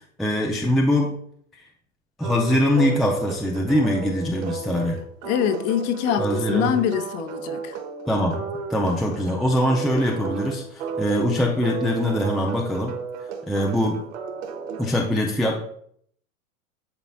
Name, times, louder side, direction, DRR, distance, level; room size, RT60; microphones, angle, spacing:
voice 1, 0.2-1.1 2.2-5.0 6.2-6.7 8.1-12.9 13.5-14.0 14.8-15.6, left 1 dB, ahead, 0.3 m, -23 dB
sound 1, 2.2-14.9, right 5 dB, 65° right, 1.4 m, -33 dB
voice 2, 5.2-7.8, left 9 dB, 40° left, 0.8 m, -24 dB
10.5 x 4.0 x 2.3 m
hypercardioid pair, 115°, 41 cm